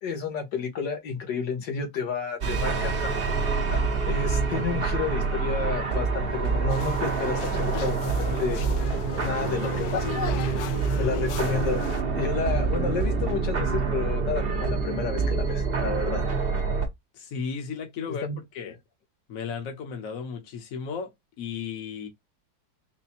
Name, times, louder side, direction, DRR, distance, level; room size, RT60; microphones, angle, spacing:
voice 1, 0.0-3.0 3.7-8.9 9.2-10.1 11.0-11.8 12.2-16.2 18.1-18.4, left 5 dB, 90° left, 1.9 m, -31 dB
sound 1, 2.4-16.9, right 4 dB, 40° right, 1.0 m, -26 dB
sound 2, 6.7-12.0, left 8 dB, 70° left, 1.0 m, -36 dB
voice 2, 17.1-18.8 19.3-22.1, left 6 dB, 55° left, 1.4 m, -35 dB
4.3 x 2.2 x 4.2 m
omnidirectional pair, 1.8 m